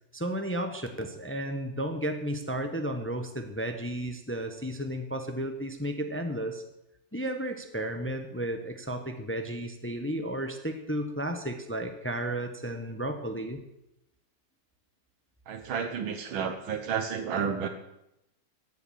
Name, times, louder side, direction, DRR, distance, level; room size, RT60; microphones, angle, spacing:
voice 1, 0.1-6.6 7.1-13.6, right 1 dB, 10° left, 6 dB, 0.7 m, -33 dB
voice 2, 15.5-17.7, right 7 dB, 75° right, 7 dB, 1.8 m, -31 dB
15.0 x 8.2 x 7.4 m, 0.85 s
omnidirectional pair, 2.2 m